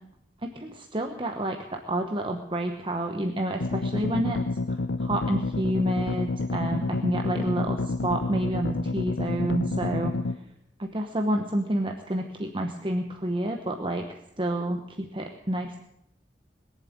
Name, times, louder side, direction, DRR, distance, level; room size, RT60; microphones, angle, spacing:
voice 1, 0.4-4.4 4.7-10.1 10.8-15.8, right 1 dB, 30° right, 3 dB, 1.1 m, -29 dB
sound 1, 3.6-10.4, left 2 dB, 85° left, 0.8 m, -29 dB
21.5 x 7.5 x 8.7 m, 0.81 s
head